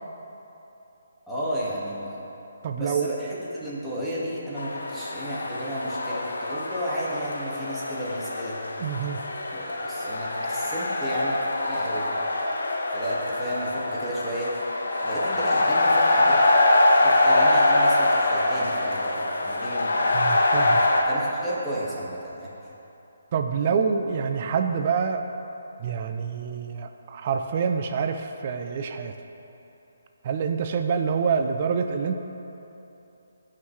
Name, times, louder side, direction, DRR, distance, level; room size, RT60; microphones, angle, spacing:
voice 1, 1.3-2.3 2.8-3.3 3.5-8.6 9.5-11.4 11.7-12.2 12.9-14.5 15.0-16.4 17.0-20.0 20.7-22.5, equal, ahead, -11 dB, 1.8 m, -33 dB
voice 2, 2.6-3.1 8.8-9.2 20.1-20.8 23.3-25.2 25.8-29.1 30.2-32.2, right 6 dB, 40° right, 6 dB, 0.6 m, -26 dB
sound 1, 4.6-21.0, left 2 dB, 80° left, 1.1 m, -24 dB
16.5 x 5.8 x 3.2 m, 3.0 s
hypercardioid pair, 155°, 0 cm